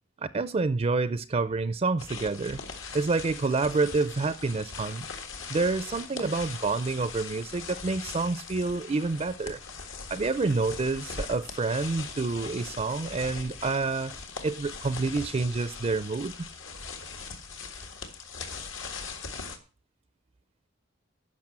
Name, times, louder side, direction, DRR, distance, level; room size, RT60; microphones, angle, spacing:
voice 1, 0.2-2.6 2.9-5.1 5.5-9.6 10.1-14.1 14.4-16.5, right 3 dB, 30° right, 0.4 m, -28 dB
sound 1, 2.0-19.6, left 5 dB, 75° left, 1.8 m, -40 dB
10.5 x 6.0 x 7.4 m
head